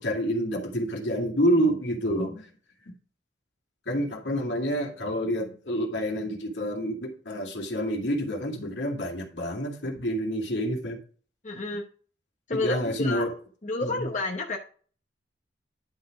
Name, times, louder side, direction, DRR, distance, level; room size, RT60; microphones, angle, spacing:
voice 1, 0.0-2.5 3.9-11.0 12.5-13.4 13.8-14.1, equal, 75° left, 2.3 m, -28 dB
voice 2, 11.4-11.8 12.5-13.2 13.6-14.6, left 2 dB, 40° left, 0.9 m, -29 dB
11.0 x 4.2 x 4.9 m
head